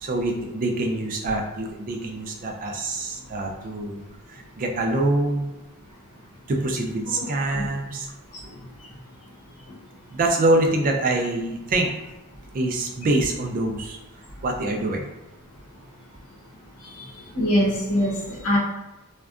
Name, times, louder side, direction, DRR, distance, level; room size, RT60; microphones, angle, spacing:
voice 1, 0.0-4.0 4.3-5.5 6.5-8.1 10.1-11.9 12.5-14.0 14.4-15.1, right 2 dB, 40° right, 2 dB, 0.4 m, -25 dB
voice 2, 17.3-18.6, equal, 70° left, -4 dB, 0.8 m, -22 dB
2.5 x 2.2 x 2.4 m, 1.0 s
head